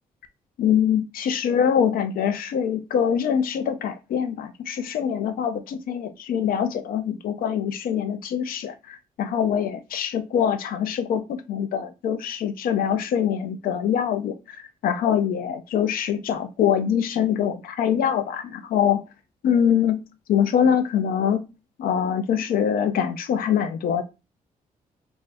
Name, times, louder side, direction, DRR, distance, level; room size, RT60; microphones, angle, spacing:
voice 1, 0.6-19.0 19.4-20.0 20.3-21.4 21.8-24.0, left 8 dB, 80° left, 10 dB, 0.5 m, -24 dB
3.5 x 2.6 x 3.3 m, 0.28 s
cardioid pair, 90°, 15 cm